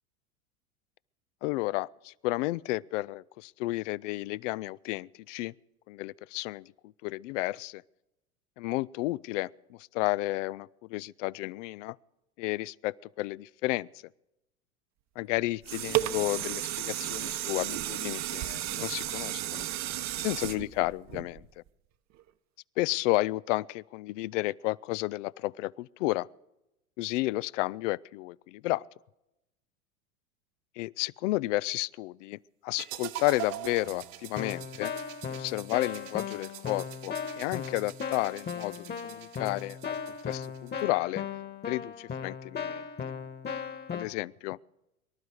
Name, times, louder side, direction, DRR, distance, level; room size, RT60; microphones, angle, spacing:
voice 1, 1.4-5.5 5.9-7.8 8.6-12.0 12.4-13.9 15.2-19.7 20.2-21.3 22.8-26.3 27.0-28.8 30.8-34.9 35.3-41.2 41.7-42.8 43.9-44.6, left 19 dB, 60° left, 0.5 m, -32 dB
sound 1, 15.3-21.7 22.2-22.3, right 14 dB, 40° right, 1.0 m, -33 dB
sound 2, 32.8-40.8, right 15 dB, 60° right, 1.2 m, -44 dB
Keyboard (musical), 33.8-34.0 34.4-44.1, left 6 dB, 25° left, 1.5 m, -37 dB
24.0 x 12.0 x 4.8 m
hypercardioid pair, 95°, 43 cm